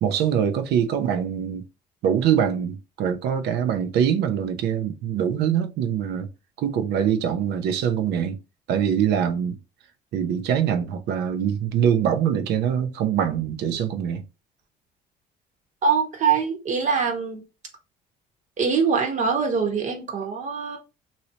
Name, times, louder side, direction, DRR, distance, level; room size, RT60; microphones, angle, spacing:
voice 1, 0.0-1.6 2.0-6.3 6.6-8.4 8.7-9.6 10.1-14.2, right 8 dB, 80° right, 0.7 m, -23 dB
voice 2, 15.8-17.4 18.6-20.8, right 5 dB, 45° right, 1.2 m, -23 dB
3.0 x 2.7 x 2.8 m
cardioid pair, 110°, 17 cm